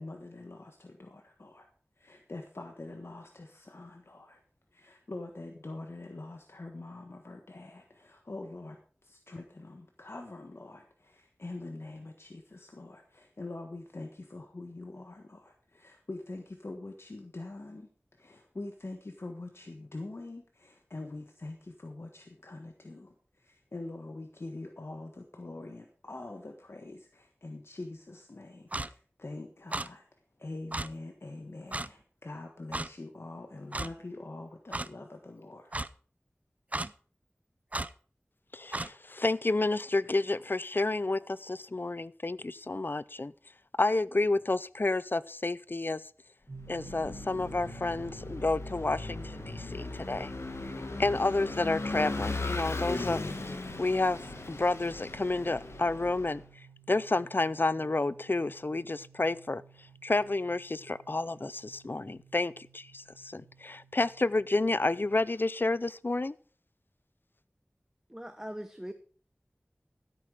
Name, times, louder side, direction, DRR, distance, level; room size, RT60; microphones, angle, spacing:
voice 1, 0.0-1.7 2.0-4.4 4.7-30.0 30.4-35.7, left 2 dB, 70° left, 1.4 m, -44 dB
Clock, 28.7-28.9 29.7-29.9 30.7-30.9 31.7-31.9 32.7-32.9 33.7-33.9 34.7-34.9 35.7-35.9 36.7-36.9 37.7-37.9 38.7-38.9, right 2 dB, 35° right, 0.5 m, -33 dB
voice 2, 38.5-43.3 43.8-46.0 46.7-50.3 51.0-53.2 53.8-56.4 56.9-59.6 60.0-66.3, left 2 dB, 50° left, 0.5 m, -30 dB
sound 1, 46.5-65.2, right 7 dB, 80° right, 3.7 m, -54 dB
Vehicle / Engine, 46.6-56.4, left 3 dB, 85° left, 1.5 m, -38 dB
voice 3, 68.1-68.9, equal, 10° right, 0.9 m, -40 dB
14.0 x 8.6 x 4.9 m
wide cardioid pair, 55°, 4 cm